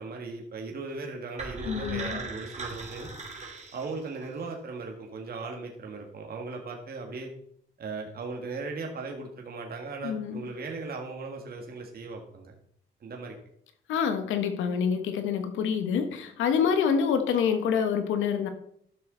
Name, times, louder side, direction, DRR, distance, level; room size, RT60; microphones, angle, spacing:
voice 1, 0.0-3.1 3.7-7.3 7.8-12.5 13.0-13.3, right 3 dB, 50° right, 1.8 m, -38 dB
sound 1, 1.4-4.4, right 3 dB, 35° right, 2.7 m, -39 dB
voice 2, 1.6-2.2 10.0-10.4 13.9-18.5, left 7 dB, 85° left, 1.3 m, -26 dB
12.0 x 6.3 x 3.9 m
cardioid pair, 90°, 20 cm